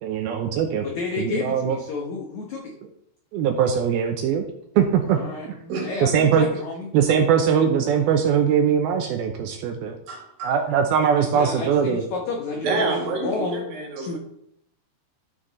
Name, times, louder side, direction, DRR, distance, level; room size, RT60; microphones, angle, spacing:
voice 1, 0.0-0.9 1.2-1.8 3.3-4.4 4.8-5.6 6.0-6.5 6.9-10.0 10.4-12.0, right 7 dB, 80° right, 4 dB, 2.3 m, -21 dB
voice 2, 0.8-2.7 5.0-6.9 11.2-13.6 14.0-14.2, left 4 dB, 85° left, 0 dB, 1.6 m, -31 dB
voice 3, 10.1-10.6 12.6-14.2, right 3 dB, 65° right, 1 dB, 3.5 m, -27 dB
13.0 x 6.2 x 4.0 m, 0.72 s
omnidirectional pair, 4.9 m